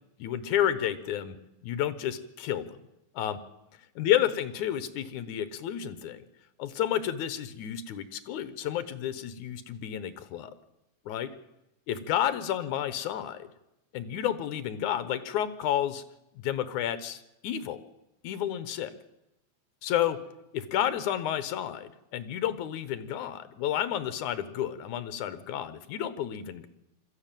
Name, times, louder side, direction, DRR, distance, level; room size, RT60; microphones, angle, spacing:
voice 1, 0.2-1.4 1.6-2.8 3.1-3.4 4.0-6.2 6.6-10.5 11.1-11.3 11.9-13.5 13.9-16.0 16.3-17.8 18.2-18.9 19.8-20.2 20.5-26.7, left 11 dB, 80° left, 13 dB, 2.6 m, -31 dB
21.5 x 14.0 x 9.1 m, 0.91 s
omnidirectional pair, 3.4 m